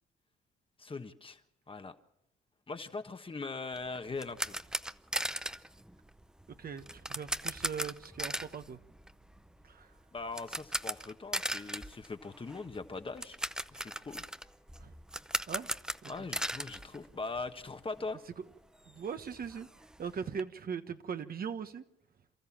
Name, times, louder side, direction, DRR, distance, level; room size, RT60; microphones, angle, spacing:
voice 1, 0.8-1.4 1.7-1.9 2.7-4.6 10.1-13.4 13.7-14.3 16.1-18.2, left 3 dB, 25° left, 1.4 m, -41 dB
sound 1, 3.7-17.7 18.0-18.1 18.5-18.6 18.9-20.4, right 1 dB, 5° right, 0.7 m, -39 dB
voice 2, 6.6-8.8 9.6-9.9 14.8-14.9 15.5-15.7 16.0-16.1 18.4-18.5 18.9-21.8, right 6 dB, 50° right, 1.3 m, -40 dB
28.0 x 13.5 x 7.4 m
cardioid pair, 90°, 20 cm